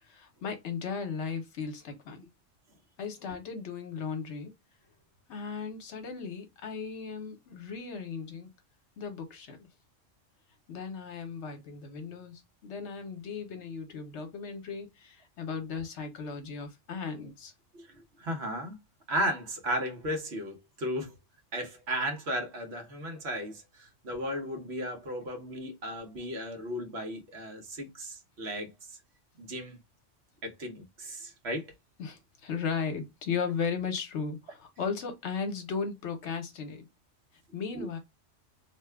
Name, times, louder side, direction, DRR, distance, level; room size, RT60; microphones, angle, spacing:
voice 1, 0.0-2.3 3.0-4.5 5.3-8.5 9.0-9.7 10.7-17.5 32.0-36.8 37.5-38.0, left 5 dB, 70° left, 1.0 m, -36 dB
voice 2, 17.7-18.8 19.1-21.1 21.5-29.0 29.4-29.8 30.4-31.7 37.8-37.9, equal, 60° right, 1.2 m, -35 dB
2.9 x 2.1 x 3.3 m
omnidirectional pair, 1.3 m